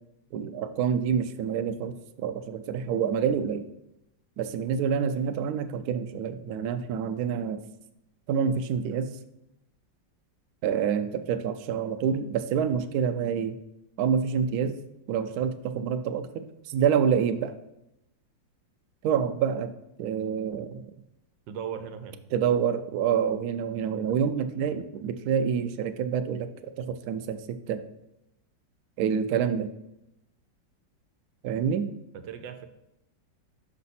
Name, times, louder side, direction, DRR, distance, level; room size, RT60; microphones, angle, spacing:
voice 1, 0.3-3.7 4.4-7.6 8.3-9.2 10.6-13.5 14.0-14.8 15.1-17.5 19.0-19.7 20.0-20.9 22.3-27.4 27.7-27.8 29.0-29.7 31.4-31.9, right 7 dB, 70° right, 9 dB, 0.9 m, -27 dB
voice 2, 21.5-22.2 32.1-32.7, right 8 dB, 90° right, 8 dB, 1.4 m, -37 dB
6.0 x 5.7 x 4.1 m, 0.87 s
omnidirectional pair, 2.0 m